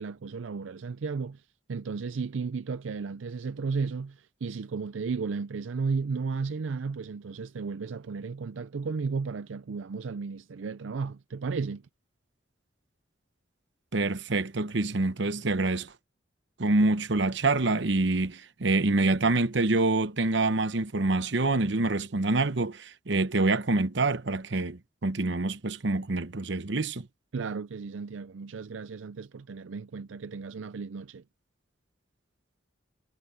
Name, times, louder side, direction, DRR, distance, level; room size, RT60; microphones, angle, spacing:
voice 1, 0.0-1.4 1.7-11.8 27.3-31.2, right 4 dB, 85° right, 0.5 m, -34 dB
voice 2, 13.9-15.9 16.6-27.1, right 2 dB, 65° right, 0.9 m, -26 dB
head